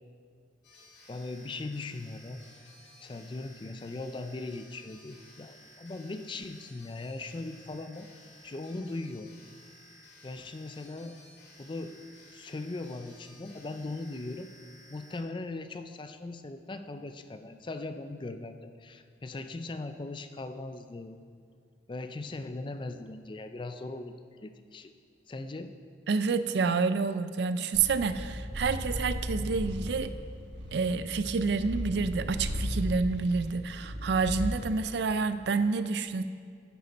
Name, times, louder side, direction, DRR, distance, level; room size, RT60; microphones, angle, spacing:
sound 1, 0.6-15.2, left 1 dB, 75° left, 2.1 m, -55 dB
voice 1, 1.1-2.4 3.0-8.1 8.4-9.3 10.2-11.2 11.6-12.0 12.3-14.5 14.9-21.2 21.9-24.1 24.4-24.9 25.3-25.7, left 2 dB, 25° left, 9 dB, 0.4 m, -39 dB
voice 2, 26.1-30.1 30.7-36.2, right 4 dB, 65° right, 12 dB, 0.4 m, -28 dB
Purr, 27.7-34.7, equal, 80° right, 1.3 m, -36 dB
10.5 x 8.5 x 4.0 m, 2.1 s
head